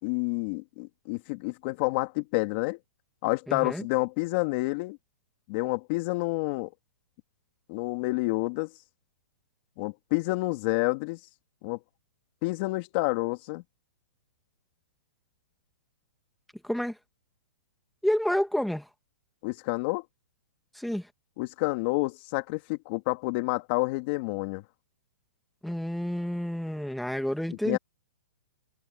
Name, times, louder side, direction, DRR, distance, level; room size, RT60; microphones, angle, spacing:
voice 1, 0.0-2.8 3.2-5.0 5.5-6.7 7.7-8.7 9.8-11.2 11.6-11.8 12.4-13.6 19.4-20.0 21.4-24.6 27.6-27.8, left 24 dB, 40° left, 2.7 m, -29 dB
voice 2, 3.5-3.9 16.6-17.0 18.0-18.9 20.7-21.1 25.6-27.8, equal, ahead, 2.4 m, -29 dB
hypercardioid pair, 145°, 9 cm